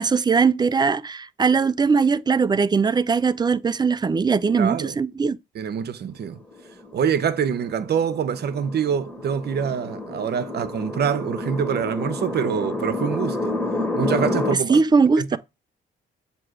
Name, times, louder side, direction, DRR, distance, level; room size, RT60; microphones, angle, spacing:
voice 1, 0.0-5.4 14.7-15.4, right 5 dB, 20° right, 0.4 m, -20 dB
voice 2, 4.6-5.0 5.5-6.4 6.9-13.6 14.0-14.8 15.2-15.4, right 7 dB, 55° right, 0.8 m, -25 dB
sound 1, 6.5-14.6, left 2 dB, 5° left, 1.4 m, -29 dB
7.6 x 2.9 x 4.7 m
cardioid pair, 90°, 20 cm